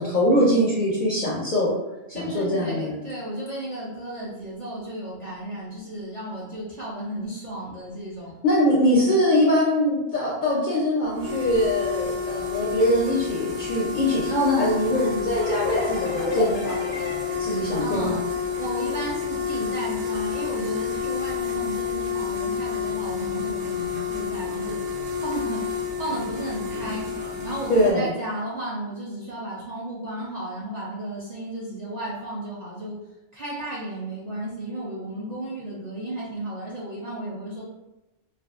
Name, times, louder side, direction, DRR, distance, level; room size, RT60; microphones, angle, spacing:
voice 1, 0.0-1.8 2.1-3.0 8.4-18.2 27.7-28.1, equal, 60° left, -5 dB, 0.5 m, -22 dB
voice 2, 2.1-8.3 17.8-18.2 18.6-27.1 27.4-33.0 33.3-37.6, right 1 dB, 55° right, -7 dB, 0.4 m, -33 dB
sound 1, 11.1-27.9, left 7 dB, 75° right, 0.9 m, -29 dB
sound 2, 15.4-18.9, left 4 dB, 85° left, 0.9 m, -33 dB
2.5 x 2.3 x 2.3 m, 0.99 s
omnidirectional pair, 1.3 m